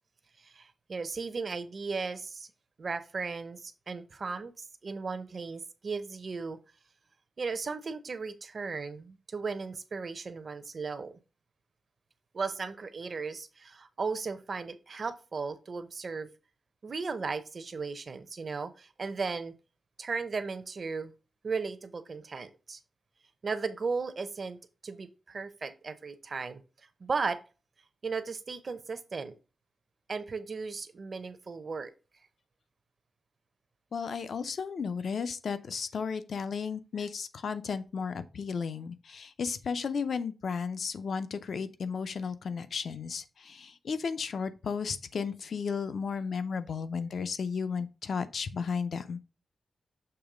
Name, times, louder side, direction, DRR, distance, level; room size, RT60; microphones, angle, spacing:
voice 1, 0.4-2.5 2.8-6.6 7.4-11.2 12.3-16.3 16.8-19.5 20.0-21.1 21.4-22.8 23.4-26.6 27.0-27.4 28.0-29.4 30.1-31.9, right 4 dB, 45° right, 0.6 m, -36 dB
voice 2, 33.9-49.2, left 5 dB, 65° left, 0.5 m, -34 dB
6.9 x 3.1 x 4.9 m
wide cardioid pair, 170°, 0 cm